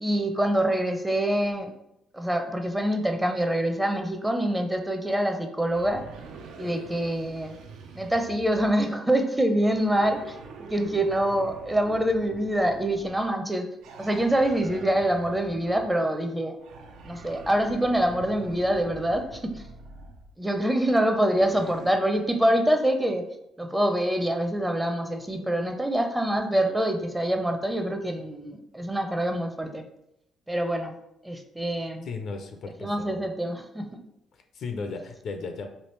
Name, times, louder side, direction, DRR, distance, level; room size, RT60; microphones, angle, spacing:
voice 1, 0.0-1.7 2.1-6.0 6.6-7.5 7.9-10.3 10.6-13.7 14.0-16.5 17.0-19.6 20.4-23.3 23.6-29.8 30.5-30.9 31.2-32.1 32.8-34.0, right 1 dB, 10° right, 5 dB, 0.5 m, -25 dB
sound 1, 5.7-9.0 9.6-13.3 13.8-16.0 16.6-20.3 21.2-21.9, right 4 dB, 80° right, 0.4 m, -45 dB
voice 2, 32.0-33.2 34.3-35.7, left 4 dB, 65° left, 6 dB, 0.4 m, -35 dB
3.2 x 2.4 x 3.1 m, 0.81 s
supercardioid pair, 65°, 0 cm